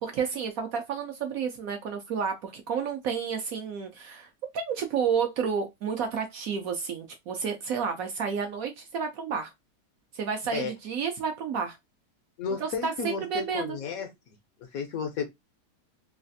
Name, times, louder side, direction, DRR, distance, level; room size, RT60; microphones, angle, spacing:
voice 1, 0.0-9.5 10.1-11.8 12.6-13.8, right 6 dB, 65° right, 0.9 m, -31 dB
voice 2, 12.4-14.1 14.7-15.3, left 5 dB, 65° left, 0.9 m, -32 dB
3.2 x 2.4 x 2.5 m
omnidirectional pair, 1.9 m